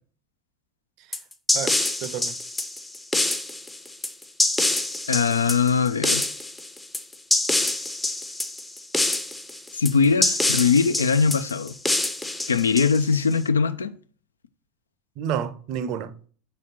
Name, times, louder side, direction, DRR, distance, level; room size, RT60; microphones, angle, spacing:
sound 1, 1.1-13.3, left 2 dB, 10° left, 0.6 m, -26 dB
voice 1, 1.5-2.4 15.2-16.2, right 8 dB, 45° right, 0.6 m, -30 dB
voice 2, 5.1-6.2 9.7-11.7 12.5-13.9, left 5 dB, 75° left, 0.4 m, -21 dB
5.0 x 4.1 x 5.8 m
figure-of-eight pair, 80°, 0 cm